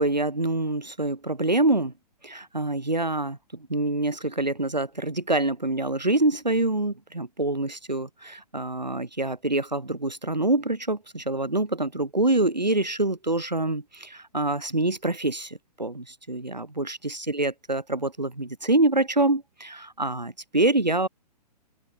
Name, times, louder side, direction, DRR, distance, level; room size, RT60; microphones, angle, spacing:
voice 1, 0.0-1.9 2.2-21.1, right 2 dB, 85° right, 6.6 m, -26 dB
open air
figure-of-eight pair, 120°, 21 cm